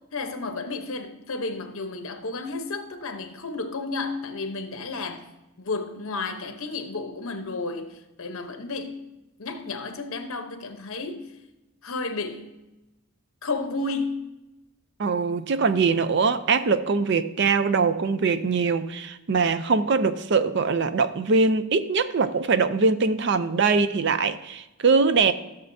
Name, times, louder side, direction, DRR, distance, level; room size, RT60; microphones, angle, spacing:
voice 1, 0.1-5.2 5.6-9.0 9.4-11.3 11.8-12.5 13.4-14.2, left 3 dB, 70° left, 0.9 m, -32 dB
voice 2, 15.0-25.3, right 4 dB, 50° right, 0.5 m, -22 dB
15.0 x 6.8 x 2.7 m
head